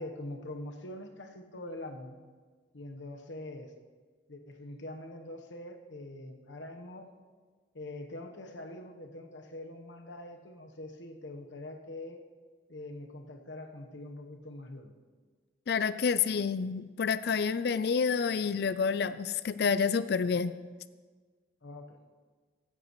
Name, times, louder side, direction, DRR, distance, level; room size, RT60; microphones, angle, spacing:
voice 1, 0.0-2.2 2.7-3.7 4.3-7.1 7.7-12.2 12.7-14.9 21.6-22.0, left 1 dB, 90° left, 5 dB, 1.1 m, -44 dB
voice 2, 15.7-20.5, left 6 dB, 60° left, 15 dB, 0.4 m, -28 dB
15.0 x 10.5 x 3.1 m, 1.5 s
head